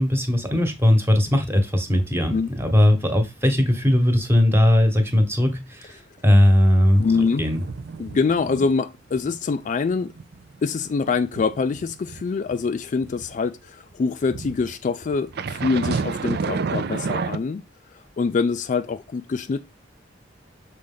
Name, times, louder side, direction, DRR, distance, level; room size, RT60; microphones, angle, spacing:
voice 1, 0.0-7.0 7.4-7.6, left 1 dB, 15° right, 1.3 m, -19 dB
sound 1, 6.9-8.8 9.1-9.4 9.7-13.3 14.3-17.4, right 4 dB, 55° right, 0.5 m, -31 dB
voice 2, 7.0-7.5 8.0-10.1 10.6-17.6 18.2-19.6, left 4 dB, 40° left, 0.3 m, -24 dB
6.5 x 4.1 x 3.8 m
head